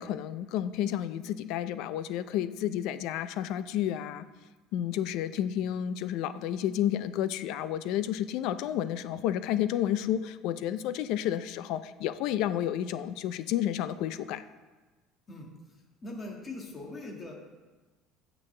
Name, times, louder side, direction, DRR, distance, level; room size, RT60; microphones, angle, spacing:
voice 1, 0.0-4.3 4.7-14.4, left 11 dB, 60° left, 13 dB, 0.5 m, -31 dB
voice 2, 15.3-17.3, left 2 dB, 20° left, 0 dB, 1.7 m, -42 dB
16.0 x 6.1 x 3.3 m, 1.2 s
cardioid pair, 155°, 0 cm